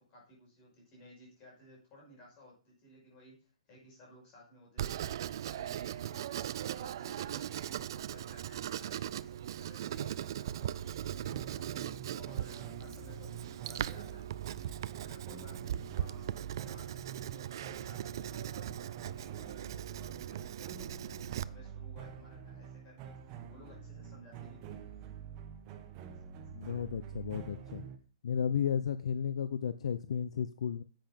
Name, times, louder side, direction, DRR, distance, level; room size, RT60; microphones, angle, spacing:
voice 1, 0.1-16.3 16.7-23.2 23.5-24.8, left 1 dB, 20° left, -2 dB, 5.8 m, -58 dB
Writing, 4.8-21.4, right 11 dB, 40° right, 0.4 m, -39 dB
sound 1, 10.6-28.0, right 7 dB, 20° right, 1.0 m, -47 dB
voice 2, 26.5-27.8 28.2-30.8, left 8 dB, 60° left, 12 dB, 0.7 m, -33 dB
10.5 x 8.0 x 5.3 m, 0.35 s
hypercardioid pair, 175°, 4 cm